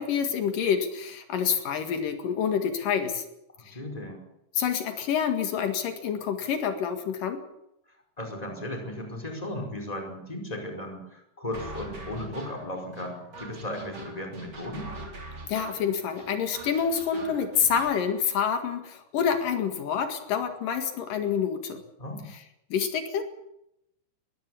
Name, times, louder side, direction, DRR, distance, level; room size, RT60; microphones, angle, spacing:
voice 1, 0.0-3.2 3.7-3.8 4.5-7.4 15.5-21.8 22.7-23.2, left 7 dB, 85° left, 6 dB, 3.6 m, -27 dB
voice 2, 3.7-4.2 8.2-14.9 22.0-22.3, left 1 dB, 10° left, 2 dB, 4.9 m, -36 dB
sound 1, 11.5-17.9, right 2 dB, 40° right, 4.3 m, -43 dB
21.5 x 15.5 x 8.4 m, 0.82 s
omnidirectional pair, 3.8 m